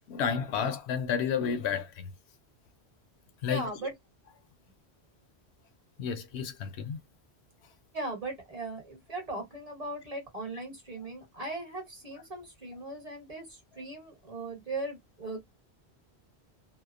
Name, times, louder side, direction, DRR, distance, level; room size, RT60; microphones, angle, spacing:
voice 1, 0.1-2.1 3.4-3.7 6.0-7.0, left 7 dB, 80° left, 0.8 m, -31 dB
voice 2, 3.5-3.9 7.9-15.4, right 2 dB, 35° right, 1.1 m, -38 dB
2.7 x 2.0 x 2.3 m
omnidirectional pair, 1.1 m